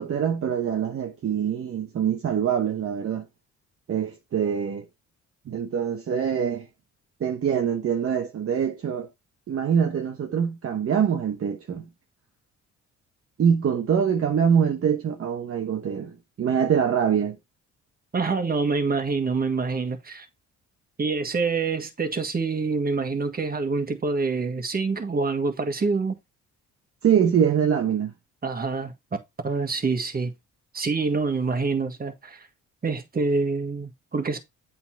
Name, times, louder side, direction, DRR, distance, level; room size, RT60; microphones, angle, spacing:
voice 1, 0.0-3.3 3.9-4.8 5.5-6.7 7.2-9.1 9.5-11.9 13.4-17.4 27.0-28.1, right 8 dB, 50° right, 1.0 m, -24 dB
voice 2, 18.1-20.3 21.0-26.2 28.4-28.9 29.4-30.3 30.7-32.5 32.8-34.4, right 4 dB, 30° right, 1.6 m, -26 dB
8.3 x 3.9 x 4.5 m
cardioid pair, 90°, 30 cm